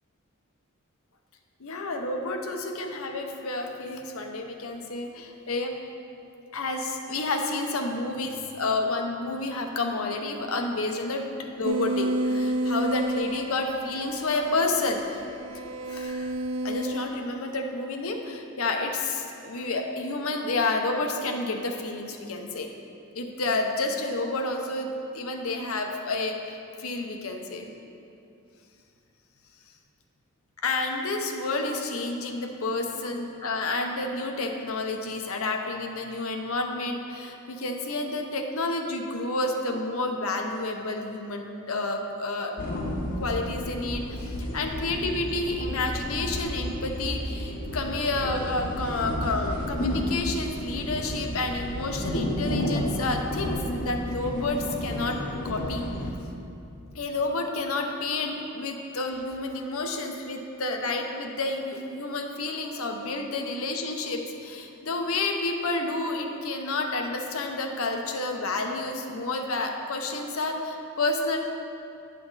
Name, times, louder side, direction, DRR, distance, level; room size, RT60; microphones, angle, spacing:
voice 1, 1.6-5.7 6.5-11.3 11.6-15.2 15.9-16.3 16.6-22.7 23.1-27.7 30.6-42.5 43.2-55.2 55.4-55.9 56.9-71.4, left 2 dB, 70° left, 3 dB, 0.7 m, -30 dB
sound 1, 11.6-17.1, right 1 dB, 65° right, 0.3 m, -30 dB
sound 2, 42.6-56.1, left 1 dB, 40° left, 0.9 m, -31 dB
9.1 x 5.9 x 4.0 m, 2.6 s
head